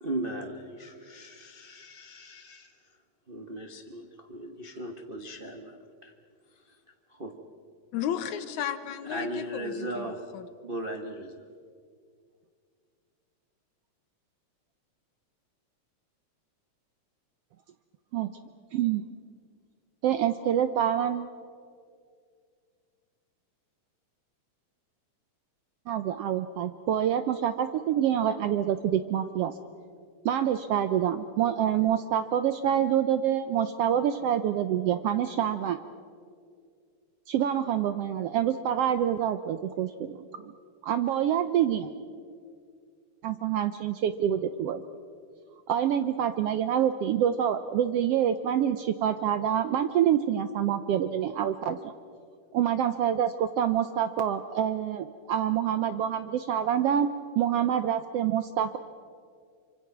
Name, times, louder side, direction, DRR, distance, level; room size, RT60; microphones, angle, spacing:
voice 1, 0.0-2.7 3.3-6.1 6.6-6.8 7.1-7.3 9.1-10.2 10.6-11.4, right 1 dB, 60° right, 2 dB, 0.5 m, -37 dB
voice 2, 7.9-10.4, left 9 dB, 80° left, 10 dB, 2.5 m, -34 dB
voice 3, 18.7-19.0 20.0-21.3 25.9-29.5 30.2-35.8 37.3-40.5 40.8-41.9 43.2-44.8 45.7-51.8 52.5-57.1 57.4-58.8, right 10 dB, 75° right, 10 dB, 1.4 m, -26 dB
25.0 x 25.0 x 6.0 m, 2.2 s
omnidirectional pair, 3.4 m